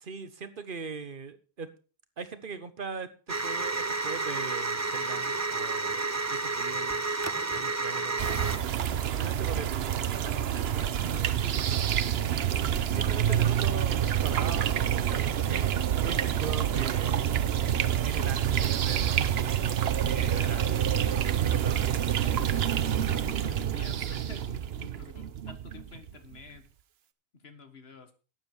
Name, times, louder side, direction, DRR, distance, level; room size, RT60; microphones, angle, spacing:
voice 1, 0.0-1.7 2.2-7.2 7.5-8.3 9.1-11.7 12.9-17.3 18.0-19.8 20.1-20.6 21.1-22.0, right 5 dB, 55° right, 11 dB, 1.3 m, -41 dB
sound 1, 3.3-8.6, right 3 dB, 20° right, 0.6 m, -30 dB
sound 2, 8.2-26.4, right 9 dB, 80° right, 1.0 m, -27 dB
voice 2, 12.1-12.6 13.1-13.5 20.0-20.8 22.2-26.7 27.3-28.1, left 3 dB, 80° left, 8 dB, 2.0 m, -48 dB
12.0 x 9.1 x 4.6 m, 0.36 s
omnidirectional pair, 1.0 m